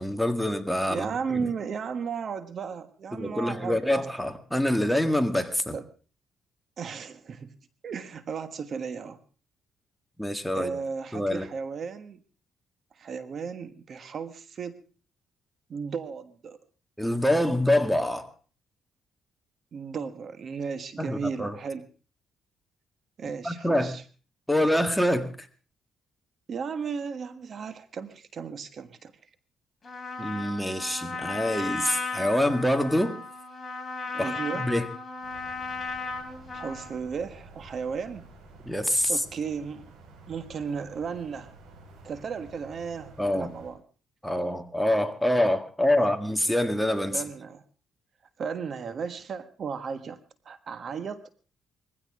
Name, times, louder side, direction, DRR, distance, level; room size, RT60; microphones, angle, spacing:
voice 1, 0.0-1.5 3.1-5.8 10.2-10.7 11.1-11.5 17.0-18.3 21.0-21.6 23.4-23.9 24.5-25.5 30.2-33.1 34.2-34.3 34.6-34.9 38.7-39.2 43.2-43.5 44.2-47.2, left 1 dB, ahead, 7 dB, 1.8 m, -25 dB
voice 2, 0.9-3.8 5.7-5.8 6.8-7.5 7.8-9.2 10.5-12.2 13.0-14.8 15.7-16.6 19.7-21.9 23.2-24.0 26.5-29.1 34.1-34.6 36.5-38.3 39.1-39.9 40.3-41.5 42.0-43.8 46.0-46.1 47.1-47.6 48.4-50.2 50.4-51.2, right 6 dB, 55° right, 11 dB, 1.4 m, -35 dB
Trumpet, 29.8-37.0, left 3 dB, 25° left, 4.8 m, -35 dB
sound 1, 35.2-43.7, right 3 dB, 85° right, 6.9 m, -51 dB
21.5 x 16.0 x 3.7 m, 0.37 s
cardioid pair, 90°, 0 cm